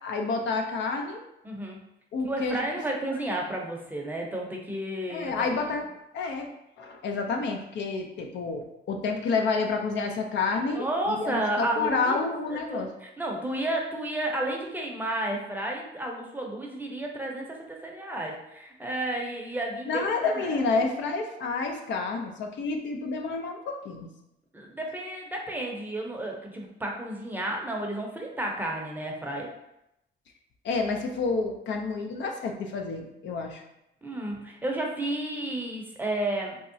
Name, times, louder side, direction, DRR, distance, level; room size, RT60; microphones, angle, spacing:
voice 1, 0.0-1.2 2.1-2.6 5.1-5.9 6.1-6.5 6.8-12.9 19.9-24.1 30.6-33.6, left 4 dB, 65° left, 3 dB, 0.5 m, -29 dB
voice 2, 1.4-1.8 2.2-5.5 10.7-20.8 24.5-29.5 34.0-36.6, right 1 dB, 10° right, 0 dB, 0.6 m, -32 dB
3.5 x 2.0 x 2.6 m, 0.84 s
cardioid pair, 90°, 20 cm